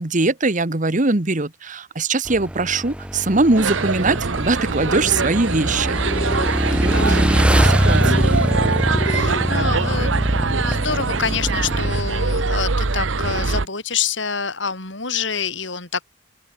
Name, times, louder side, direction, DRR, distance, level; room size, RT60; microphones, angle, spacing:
voice 1, 0.0-6.0 6.7-7.2 7.5-8.3, right 3 dB, 40° right, 1.3 m, -21 dB
Motorcycle / Engine, 2.3-12.0, equal, 5° right, 1.2 m, -22 dB
Russell Square - Dining at Carlucci in the Brunswick, 3.6-13.7, right 4 dB, 80° right, 1.2 m, -23 dB
sound 1, 4.8-5.3 6.0-6.5 6.8-7.3 7.9-8.4 8.9-9.5, left 1 dB, 50° left, 4.5 m, -30 dB
voice 2, 6.7-7.8 9.1-16.0, left 6 dB, 65° left, 4.4 m, -27 dB
open air
head